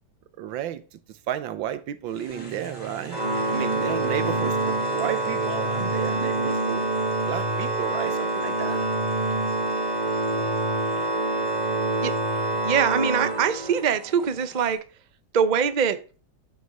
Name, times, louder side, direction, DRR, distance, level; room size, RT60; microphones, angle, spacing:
voice 1, 0.4-3.2 3.5-6.9 7.2-8.9, right 10 dB, 90° right, 1.6 m, -32 dB
sound 1, 2.1-14.7, left 2 dB, 45° left, 3.1 m, -46 dB
sound 2, 2.3-7.7, right 7 dB, 65° right, 2.6 m, -43 dB
Organ, 3.1-14.0, right 2 dB, 25° right, 1.7 m, -26 dB
voice 2, 12.6-14.8 15.3-16.0, right 7 dB, 40° right, 0.6 m, -23 dB
12.0 x 6.3 x 5.4 m
omnidirectional pair, 2.0 m